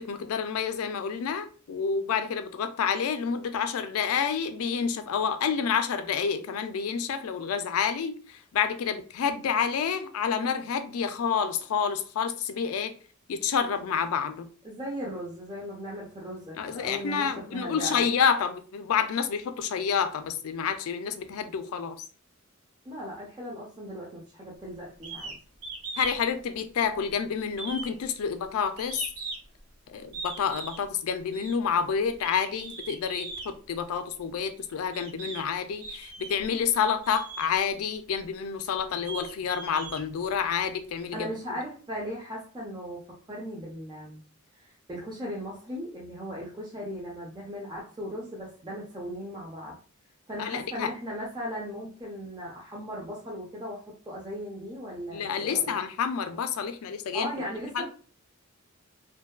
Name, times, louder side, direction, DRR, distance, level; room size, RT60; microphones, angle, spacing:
voice 1, 0.0-12.9 13.3-14.5 16.6-22.0 26.0-29.0 29.9-41.3 50.4-50.9 55.1-57.3 57.7-57.8, left 6 dB, 75° left, 0.3 m, -29 dB
voice 2, 14.6-18.1 22.8-25.3 41.1-44.2 44.6-49.7 50.3-55.8 57.1-57.8, equal, 20° right, 0.5 m, -37 dB
sound 1, 25.0-25.4 25.6-26.2 26.5-27.1 27.5-29.6 30.1-30.8 31.3-31.6 32.1-33.5 34.3-34.4 34.9-35.5 35.8-36.5 37.0-37.5 38.1-38.2 38.8-40.6, right 3 dB, 85° right, 0.6 m, -39 dB
2.6 x 2.2 x 2.2 m
head